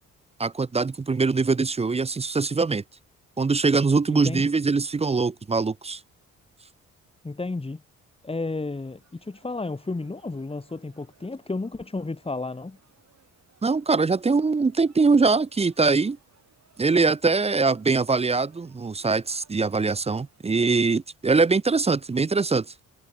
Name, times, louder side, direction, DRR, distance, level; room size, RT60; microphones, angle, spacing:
voice 1, 0.4-2.8 3.4-6.0 13.6-16.2 16.8-22.7, right 4 dB, 15° right, 0.7 m, -22 dB
voice 2, 4.1-4.4 7.2-7.8 8.2-12.8, left 3 dB, 15° left, 1.8 m, -32 dB
sound 1, 8.8-20.4, right 7 dB, 45° right, 6.7 m, -63 dB
figure-of-eight pair, 45°, 38 cm